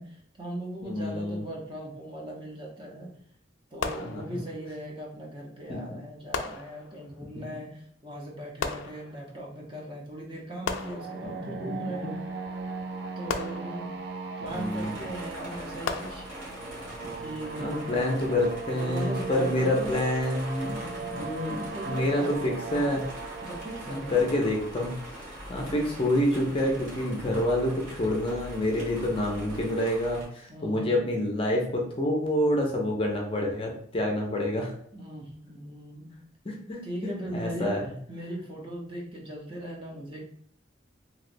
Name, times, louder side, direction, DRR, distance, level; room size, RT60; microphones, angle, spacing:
voice 1, 0.0-3.1 3.7-12.1 13.2-13.9 14.4-16.3 17.2-18.0 18.7-20.0 21.7-22.8 23.4-24.3 25.5-25.9 30.5-31.0 34.9-36.1 36.8-37.7 38.1-40.2, right 1 dB, 25° right, -2 dB, 0.7 m, -39 dB
voice 2, 0.8-1.4 4.0-4.4 5.7-5.8 7.3-7.4 11.4-11.7 14.5-14.9 17.6-23.0 23.9-34.7 36.5-37.8, left 1 dB, 30° left, 0 dB, 0.5 m, -28 dB
sound 1, 3.8-4.7 6.3-7.2 8.6-9.5 10.7-11.6 13.3-14.2 15.9-16.7, left 5 dB, 85° left, 0.3 m, -36 dB
sound 2, 10.5-26.4, right 4 dB, 60° right, 0.4 m, -39 dB
sound 3, 14.4-30.3, equal, 85° right, 1.3 m, -43 dB
3.1 x 2.9 x 2.5 m, 0.63 s
head